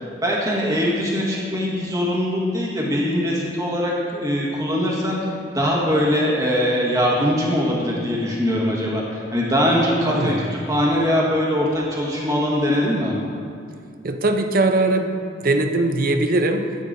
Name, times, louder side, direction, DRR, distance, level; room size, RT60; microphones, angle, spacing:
voice 1, 0.2-5.2 5.5-13.1, equal, 20° right, -4 dB, 1.4 m, -22 dB
voice 2, 10.0-10.6 14.0-16.8, right 2 dB, 50° right, 6 dB, 0.5 m, -21 dB
10.0 x 8.7 x 2.6 m, 2.4 s
head